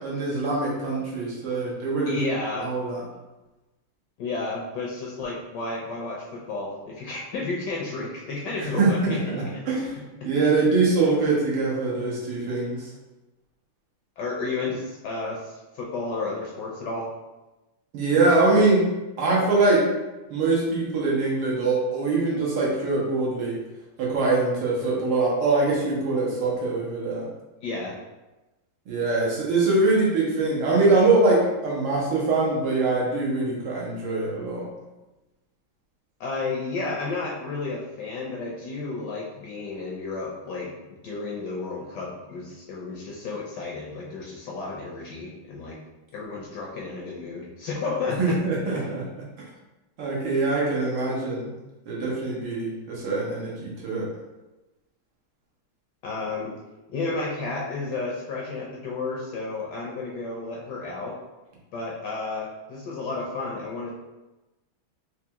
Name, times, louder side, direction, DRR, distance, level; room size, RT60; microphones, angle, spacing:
voice 1, 0.0-2.1 2.6-3.0 8.8-9.9 10.2-12.9 17.9-18.8 19.2-19.8 20.3-23.6 24.0-27.3 28.9-34.7 48.2-49.0 50.0-51.5 51.9-54.1, right 3 dB, 85° right, -4 dB, 1.9 m, -23 dB
voice 2, 2.1-2.7 4.2-9.6 10.6-10.7 14.2-17.1 27.6-28.0 36.2-40.7 41.0-45.8 46.1-48.4 48.6-48.9 56.0-56.6 56.9-61.2 61.7-63.9, left 3 dB, 75° left, -3 dB, 1.0 m, -32 dB
4.5 x 2.3 x 2.8 m, 1.1 s
omnidirectional pair, 2.3 m